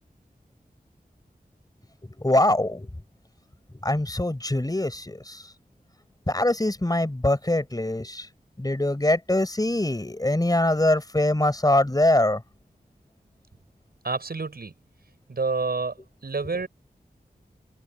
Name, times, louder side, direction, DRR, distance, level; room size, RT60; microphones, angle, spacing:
voice 1, 2.2-2.9 3.8-5.4 6.3-8.3 8.6-12.4, left 1 dB, 25° left, 4.8 m, -23 dB
voice 2, 14.0-14.7 15.3-16.7, right 4 dB, 70° right, 6.6 m, -28 dB
wide cardioid pair, 75°, 16 cm